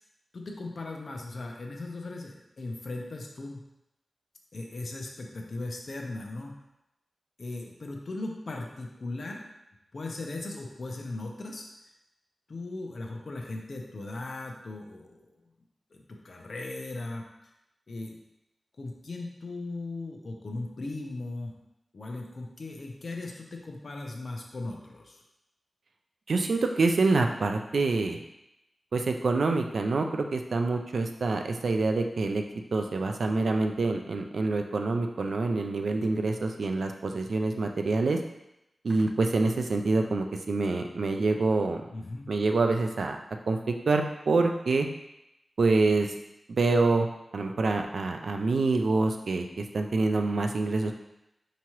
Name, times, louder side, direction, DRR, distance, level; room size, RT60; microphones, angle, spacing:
voice 1, 0.3-3.6 4.5-6.6 7.4-9.4 9.9-11.6 12.5-15.2 15.9-17.2 17.9-18.2 18.8-21.5 21.9-25.2 41.9-42.3, left 2 dB, 55° left, 1 dB, 0.6 m, -38 dB
voice 2, 26.3-28.2 28.9-32.4 32.7-38.2 38.8-41.8 42.3-43.2 43.5-44.9 45.6-46.1 46.5-47.1 47.3-50.9, right 3 dB, 70° right, 4 dB, 0.4 m, -26 dB
4.7 x 2.9 x 3.0 m, 0.89 s
wide cardioid pair, 125°, 0 cm